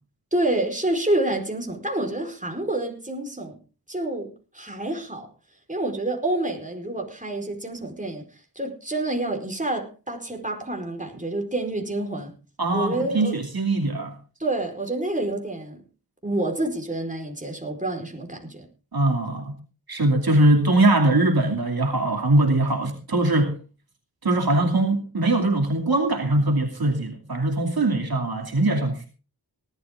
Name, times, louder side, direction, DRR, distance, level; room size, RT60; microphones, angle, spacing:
voice 1, 0.3-3.6 3.9-5.3 5.7-8.2 8.5-12.3 12.7-13.4 14.4-15.8 16.2-18.7, right 1 dB, 20° right, 4.6 m, -28 dB
voice 2, 12.6-14.2 18.9-19.5 19.9-23.5 24.2-29.1, right 2 dB, 65° right, 2.6 m, -21 dB
18.5 x 12.0 x 3.7 m
wide cardioid pair, 45°, 39 cm